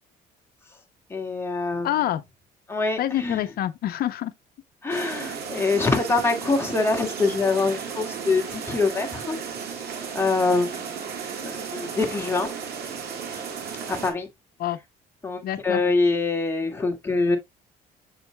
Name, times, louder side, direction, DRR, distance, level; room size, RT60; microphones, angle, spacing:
voice 1, 1.1-1.9 2.7-3.4 4.8-9.4 10.1-11.0 11.4-12.5 13.9-14.3 15.2-17.4, left 3 dB, 15° left, 2.0 m, -24 dB
voice 2, 1.8-2.2 3.0-4.3 14.6-14.8 15.4-15.8, left 12 dB, 65° left, 0.7 m, -26 dB
sound 1, 4.9-14.1, right 6 dB, 70° right, 2.1 m, -34 dB
6.8 x 6.5 x 2.2 m
cardioid pair, 110°, 17 cm